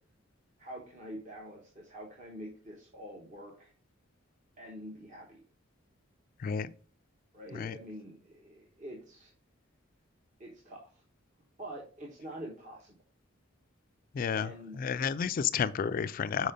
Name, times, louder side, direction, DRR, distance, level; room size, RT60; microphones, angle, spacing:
voice 1, 0.6-3.7 4.6-5.4 7.3-9.3 10.4-11.0 11.6-13.0 14.3-14.9, right 1 dB, 40° right, 1.2 m, -46 dB
voice 2, 14.1-14.5 14.8-16.5, left 7 dB, 45° left, 0.3 m, -31 dB
5.3 x 4.6 x 5.0 m
head